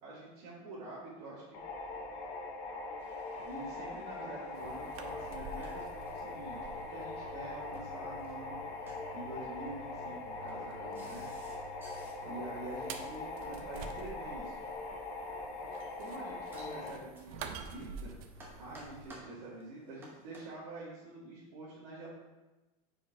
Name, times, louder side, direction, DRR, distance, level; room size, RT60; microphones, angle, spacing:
voice 1, 0.0-1.6 3.4-8.6 9.1-11.3 12.2-14.6 16.0-18.2 18.5-22.1, right 2 dB, 80° right, -9 dB, 1.8 m, -46 dB
sound 1, 1.5-16.9, left 3 dB, 40° left, 0.9 m, -42 dB
sound 2, 3.0-20.5, right 1 dB, 10° right, 0.7 m, -60 dB
sound 3, 4.5-19.2, right 4 dB, 65° right, 0.6 m, -49 dB
4.9 x 4.3 x 4.6 m, 1.1 s
supercardioid pair, 175°, 20 cm